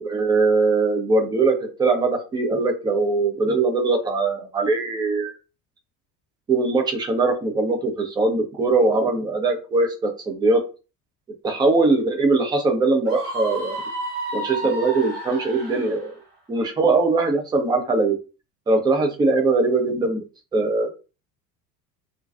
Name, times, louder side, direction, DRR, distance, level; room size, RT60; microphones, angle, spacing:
voice 1, 0.0-5.3 6.5-10.6 11.4-13.7 14.3-16.1 16.5-18.2 18.7-20.2 20.5-20.9, right 3 dB, 10° right, 3 dB, 0.4 m, -21 dB
Screaming, 13.1-16.0, right 1 dB, 65° right, 1.1 m, -31 dB
2.5 x 2.2 x 2.3 m, 0.33 s
figure-of-eight pair, 70°, 49 cm